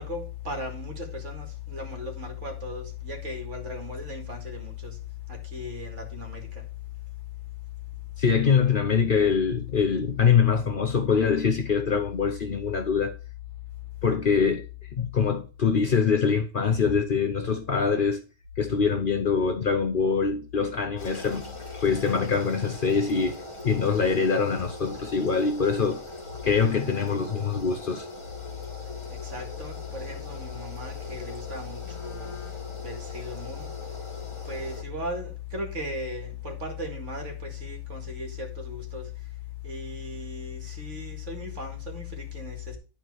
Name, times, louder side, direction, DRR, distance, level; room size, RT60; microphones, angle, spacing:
voice 1, 0.0-5.0 5.5-6.4 29.2-32.3 32.8-33.7 34.5-39.1 39.6-42.8, left 3 dB, 65° right, 2.3 m, -36 dB
voice 2, 8.2-13.1 14.0-14.6 14.9-18.2 18.6-21.4 21.8-26.0 26.4-28.1, left 6 dB, 50° left, 0.8 m, -24 dB
sound 1, 21.0-34.8, left 1 dB, 25° left, 1.3 m, -41 dB
10.5 x 4.3 x 4.6 m
omnidirectional pair, 1.4 m